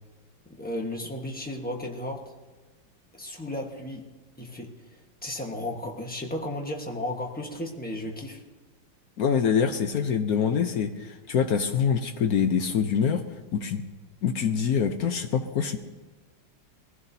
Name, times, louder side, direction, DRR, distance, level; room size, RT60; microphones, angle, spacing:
voice 1, 0.5-2.3 3.1-4.1 4.4-4.8 5.2-8.4, left 1 dB, 5° left, 0 dB, 0.8 m, -34 dB
voice 2, 9.2-13.2 13.5-13.8 14.2-15.8, left 7 dB, 65° left, 7 dB, 0.9 m, -25 dB
22.5 x 15.5 x 2.7 m, 1.2 s
omnidirectional pair, 2.2 m